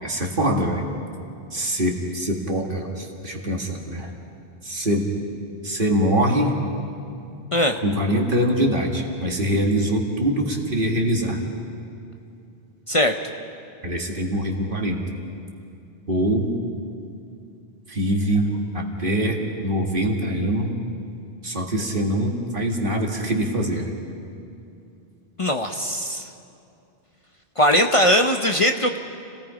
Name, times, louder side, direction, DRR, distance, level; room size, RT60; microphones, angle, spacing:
voice 1, 0.0-0.8 1.5-4.1 4.6-5.1 5.6-6.6 7.8-11.4 13.8-15.0 16.1-16.5 17.9-20.7 21.4-23.9, equal, 55° right, 1 dB, 2.3 m, -23 dB
voice 2, 25.4-26.3 27.6-29.0, equal, 35° left, 5 dB, 0.8 m, -20 dB
30.0 x 18.0 x 5.1 m, 2.6 s
omnidirectional pair, 1.0 m